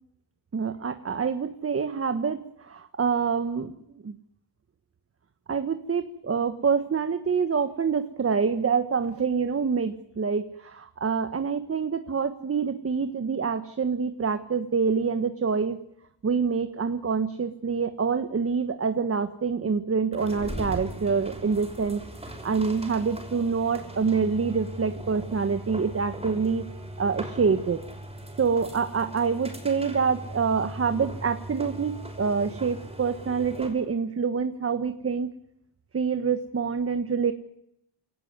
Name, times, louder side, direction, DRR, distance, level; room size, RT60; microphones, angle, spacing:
voice 1, 0.5-4.2 5.5-15.8 16.2-22.0 22.4-26.7 27.0-27.8 28.4-35.3 35.9-37.3, right 5 dB, 30° right, 10 dB, 1.4 m, -26 dB
sound 1, 20.1-33.9, right 1 dB, 15° right, 6.0 m, -39 dB
28.5 x 18.5 x 9.6 m, 0.79 s
wide cardioid pair, 140°, 44 cm